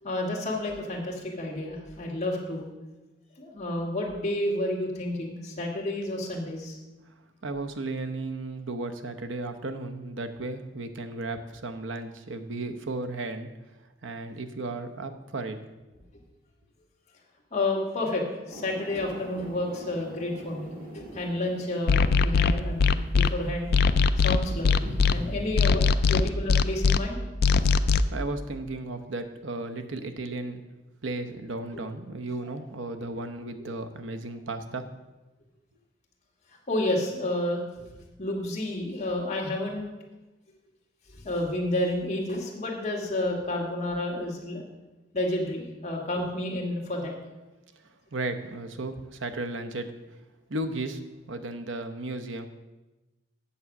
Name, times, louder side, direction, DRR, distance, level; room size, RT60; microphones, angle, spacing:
voice 1, 0.0-2.7 3.4-6.8 17.5-23.7 24.2-27.2 32.4-32.6 36.7-37.9 38.2-39.9 41.1-44.6 45.1-47.1, left 1 dB, 40° left, -2 dB, 2.0 m, -30 dB
voice 2, 7.4-13.5 14.0-15.6 28.1-30.6 31.0-34.9 48.1-49.9 50.5-51.0 51.3-52.5, right 2 dB, 85° right, 7 dB, 0.8 m, -34 dB
sound 1, 18.5-25.4, equal, 50° right, 2.1 m, -43 dB
sound 2, 21.9-23.3 23.7-25.1 25.6-27.0 27.4-28.0, left 5 dB, 55° left, 0.4 m, -20 dB
8.5 x 6.9 x 6.0 m, 1.1 s
head